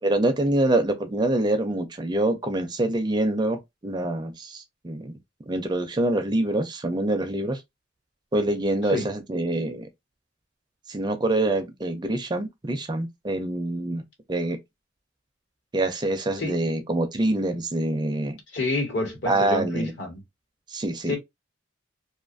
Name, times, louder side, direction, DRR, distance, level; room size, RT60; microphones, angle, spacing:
voice 1, 0.0-5.1 5.5-7.6 8.3-9.9 10.9-14.0 14.3-14.6 15.7-18.4 19.3-19.9 20.7-21.2, right 1 dB, 20° right, 0.4 m, -25 dB
voice 2, 18.5-20.2 21.1-21.2, left 2 dB, 65° left, 1.2 m, -28 dB
2.5 x 2.4 x 2.5 m
head